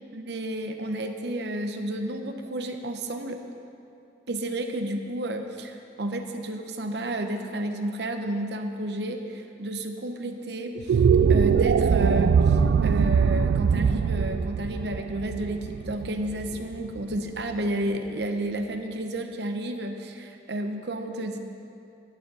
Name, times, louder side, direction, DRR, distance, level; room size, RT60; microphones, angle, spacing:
voice 1, 0.1-3.4 4.3-11.0 11.3-21.4, right 1 dB, 60° right, 5 dB, 0.8 m, -31 dB
sound 1, 10.7-17.1, right 6 dB, 80° right, 0.3 m, -22 dB
11.0 x 9.6 x 5.5 m, 2.7 s
head